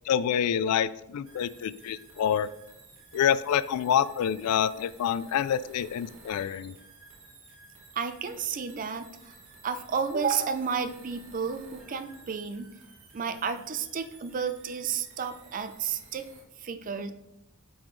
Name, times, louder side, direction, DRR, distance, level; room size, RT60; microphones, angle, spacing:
voice 1, 0.1-2.5 3.1-6.7, left 9 dB, 90° left, 17 dB, 0.3 m, -27 dB
sound 1, 1.3-16.4, right 3 dB, 60° right, 1.5 m, -54 dB
voice 2, 8.0-9.3 9.6-12.7 13.1-16.2 16.6-17.1, right 6 dB, 40° right, 10 dB, 0.4 m, -32 dB
8.6 x 3.9 x 3.1 m, 0.85 s
head